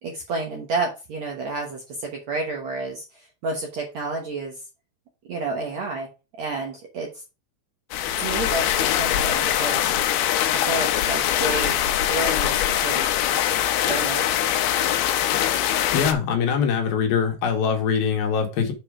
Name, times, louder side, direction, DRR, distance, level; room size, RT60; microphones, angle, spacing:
voice 1, 0.0-4.5 5.3-6.1 6.4-7.2 8.2-9.9 10.5-11.7 12.0-13.1 13.8-14.6, right 3 dB, 75° right, 0 dB, 1.6 m, -30 dB
sound 1, 7.9-16.1, left 11 dB, 80° left, 2.4 m, -22 dB
voice 2, 15.9-18.7, left 7 dB, 65° left, 4 dB, 2.9 m, -23 dB
7.3 x 4.8 x 4.9 m, 0.29 s
omnidirectional pair, 5.1 m